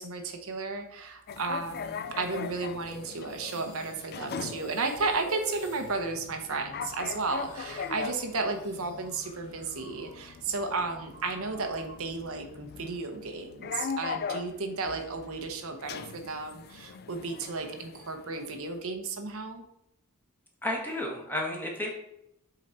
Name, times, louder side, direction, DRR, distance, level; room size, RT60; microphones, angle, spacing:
voice 1, 0.0-19.6, right 3 dB, 65° right, 5 dB, 0.9 m, -33 dB
sound 1, 1.3-18.8, left 6 dB, 45° left, 0.4 m, -41 dB
sound 2, 2.9-10.3 10.6-12.1, equal, 25° left, 1.9 m, -48 dB
voice 2, 20.6-21.9, left 1 dB, 10° left, -1 dB, 1.5 m, -32 dB
7.6 x 4.0 x 4.3 m, 0.80 s
head